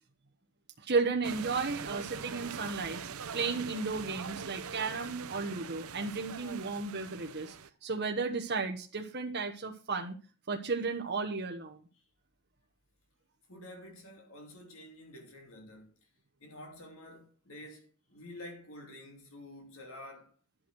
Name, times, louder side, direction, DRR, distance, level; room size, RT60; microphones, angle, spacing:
voice 1, 0.8-3.0 3.3-7.5 7.8-10.2 10.5-11.8, right 4 dB, 50° right, 1.1 m, -34 dB
sound 1, 1.2-7.7, right 6 dB, 80° right, 0.7 m, -42 dB
voice 2, 13.5-16.0 16.4-20.3, left 1 dB, 65° left, 2.8 m, -49 dB
11.5 x 6.4 x 6.1 m
head